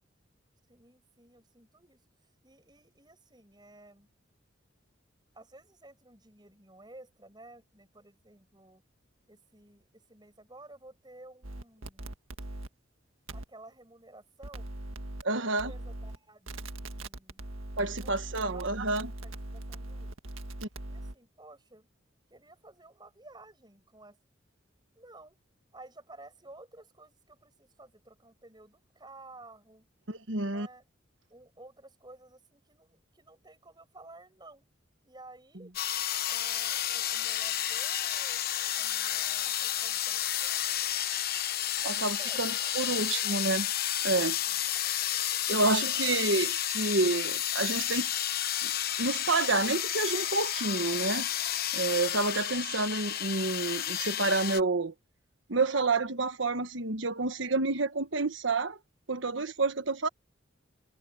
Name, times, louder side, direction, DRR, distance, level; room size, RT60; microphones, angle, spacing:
voice 1, 0.7-2.0 2.4-4.1 5.3-8.8 9.3-12.1 13.3-14.7 15.4-17.4 17.8-18.8 19.2-20.1 20.9-21.9 22.3-24.2 24.9-25.4 25.7-29.9 30.4-30.8 31.3-34.7 35.0-35.8 36.3-38.4 38.7-40.9 41.7-43.6 44.5-44.9, right 2 dB, 20° right, 6.7 m, -54 dB
sound 1, 11.4-12.7 13.3-13.4 14.4-15.2 15.6-16.2 16.5-21.1, right 1 dB, 90° right, 1.7 m, -40 dB
voice 2, 15.2-15.7 17.8-19.1 20.6-20.7 30.1-30.7 41.8-43.7 44.0-44.7 45.5-48.1 48.6-48.7 49.0-51.3 51.7-54.9 55.5-58.8 59.1-60.1, right 3 dB, 70° right, 1.3 m, -29 dB
sound 2, 35.7-54.6, left 11 dB, 50° left, 0.9 m, -31 dB
head